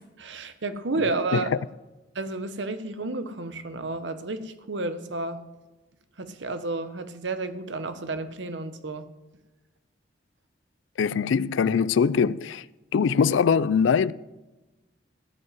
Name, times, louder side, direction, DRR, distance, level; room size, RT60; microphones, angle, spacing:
voice 1, 0.2-1.5 2.1-5.4 6.2-9.1, right 3 dB, 75° right, 0.9 m, -31 dB
voice 2, 11.0-12.6 12.9-14.1, left 6 dB, 85° left, 0.4 m, -22 dB
15.0 x 5.4 x 9.3 m
head